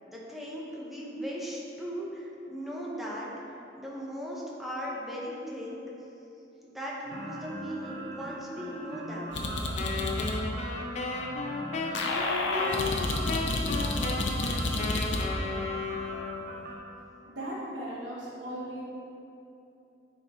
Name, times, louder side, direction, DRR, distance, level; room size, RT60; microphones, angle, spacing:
voice 1, 0.1-3.3 3.7-5.8 6.6-9.4, equal, ahead, -5 dB, 0.8 m, -38 dB
sound 1, 7.0-16.8, right 2 dB, 55° right, 0.8 m, -41 dB
sound 2, 9.3-10.4 11.9-15.2, left 2 dB, 75° left, 0.6 m, -30 dB
Wind instrument woodwind instrument, 9.8-16.6, left 4 dB, 35° left, 0.5 m, -34 dB
voice 2, 17.3-18.8, right 1 dB, 85° right, -5 dB, 1.2 m, -37 dB
9.1 x 3.9 x 3.0 m, 2.9 s
head